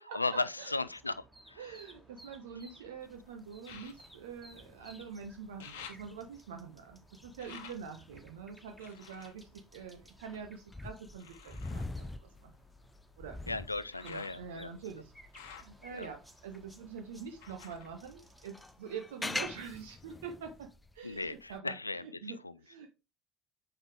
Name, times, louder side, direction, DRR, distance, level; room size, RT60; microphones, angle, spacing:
voice 1, 0.1-1.2 1.5-1.8 13.5-14.7 15.9-16.1 21.0-22.5, left 3 dB, 90° left, 0.3 m, -36 dB
sound 1, 0.8-18.8, equal, 5° right, 1.6 m, -59 dB
sound 2, 1.4-2.8 3.6-5.1 5.4-10.5 11.2-19.0 19.3-20.2 20.7-20.8, left 7 dB, 65° left, 1.0 m, -55 dB
voice 2, 1.6-12.5 13.2-13.4 14.0-15.1 15.5-20.7 20.9-21.8 22.0-22.4 22.6-22.9, right 6 dB, 70° right, 1.0 m, -45 dB
sound 3, 3.0-16.7 17.1-21.6, left 2 dB, 15° left, 0.4 m, -46 dB
7.1 x 5.4 x 3.2 m
figure-of-eight pair, 60°, 0 cm